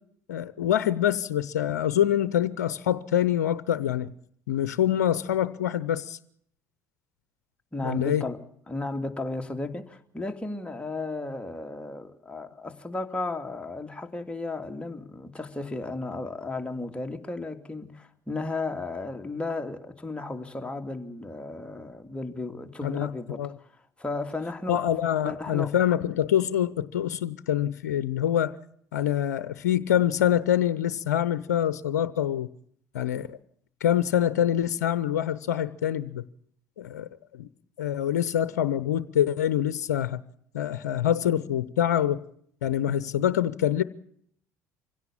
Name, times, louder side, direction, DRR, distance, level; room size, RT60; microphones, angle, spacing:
voice 1, 0.3-4.1 4.5-6.2 7.8-8.2 22.8-23.5 24.7-28.6 28.9-32.5 32.9-33.4 33.8-36.2 36.8-37.5 37.8-40.2 40.5-42.2 42.6-43.8, left 10 dB, 80° left, 0.8 m, -25 dB
voice 2, 7.7-8.4 8.7-23.7 24.0-24.8 25.2-25.7, left 2 dB, 10° left, 2.7 m, -34 dB
25.5 x 17.0 x 7.3 m
hypercardioid pair, 60°, 9 cm